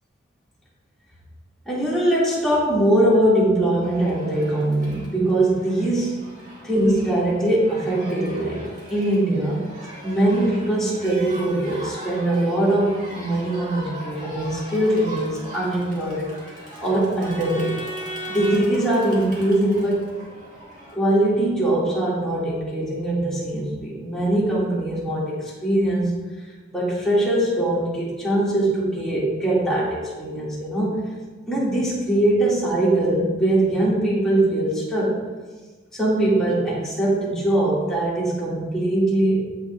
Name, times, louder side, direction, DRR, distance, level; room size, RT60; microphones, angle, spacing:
voice 1, 1.7-6.3 6.6-9.6 10.0-16.3 16.8-17.7 18.3-20.1 20.9-26.2 26.7-31.0 31.5-35.2 35.9-39.4, right 1 dB, 5° left, -8 dB, 2.5 m, -22 dB
Crowd, 3.8-20.9, right 1 dB, 40° right, 2.1 m, -39 dB
15.0 x 5.1 x 2.6 m, 1.3 s
head